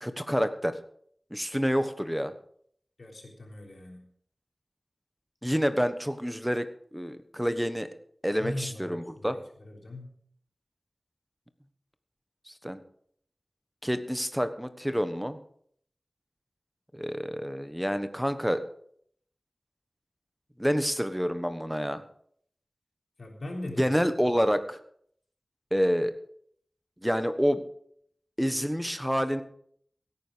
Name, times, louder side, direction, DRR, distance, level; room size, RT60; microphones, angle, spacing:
voice 1, 0.0-0.8 1.3-2.3 5.4-7.9 8.2-9.4 12.5-12.8 13.8-15.4 16.9-18.6 20.6-22.0 23.8-24.8 25.7-26.1 27.0-27.6 28.4-29.4, equal, 5° right, 10 dB, 1.3 m, -28 dB
voice 2, 3.0-4.0 8.4-10.1 23.2-24.0 24.4-24.5, left 1 dB, 80° left, 0 dB, 3.6 m, -40 dB
16.5 x 9.6 x 5.1 m, 0.65 s
wide cardioid pair, 65°, 0 cm